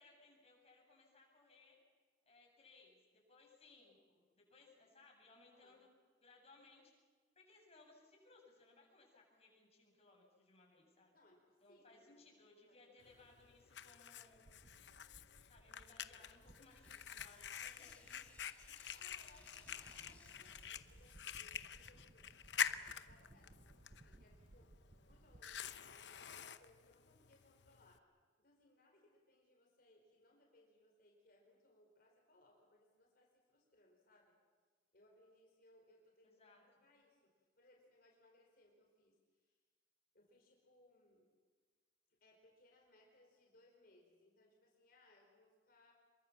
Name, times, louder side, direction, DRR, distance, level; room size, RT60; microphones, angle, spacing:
voice 1, 0.0-1.8 2.3-5.9 6.2-6.9 7.3-11.1 11.6-14.4 15.5-18.3 19.0-19.2 36.2-36.9, left 3 dB, 35° left, -1 dB, 7.6 m, -65 dB
voice 2, 5.5-5.8 11.1-12.3 12.7-13.1 15.6-16.3 18.9-28.0 28.4-34.4 34.9-39.5 40.1-41.3 42.2-45.9, left 1 dB, 55° left, 1 dB, 4.6 m, -70 dB
Fire, 13.0-28.0, left 8 dB, 70° left, 0.9 m, -47 dB
sound 1, 14.4-25.8, right 1 dB, 30° right, 0.6 m, -64 dB
Tearing, 16.6-21.3, left 2 dB, 10° left, 4.0 m, -66 dB
27.0 x 23.0 x 7.3 m, 1.5 s
head